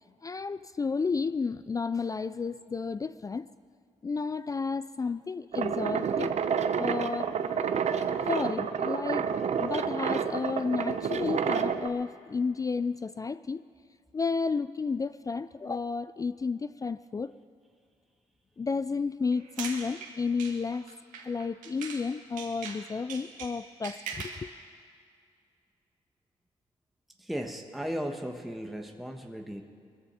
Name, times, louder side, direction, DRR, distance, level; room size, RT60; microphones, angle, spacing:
voice 1, 0.2-3.5 4.0-6.3 6.8-7.3 8.3-9.3 9.6-13.6 14.1-17.3 18.6-20.9 21.2-24.5, left 4 dB, 25° left, 0.4 m, -32 dB
sound 1, 5.5-11.9, right 7 dB, 60° right, 0.8 m, -29 dB
sound 2, 19.3-22.1 22.4-24.5, right 6 dB, 85° right, 1.6 m, -41 dB
voice 2, 27.2-29.6, equal, ahead, 1.2 m, -36 dB
20.5 x 14.0 x 4.3 m
supercardioid pair, 60°, 13 cm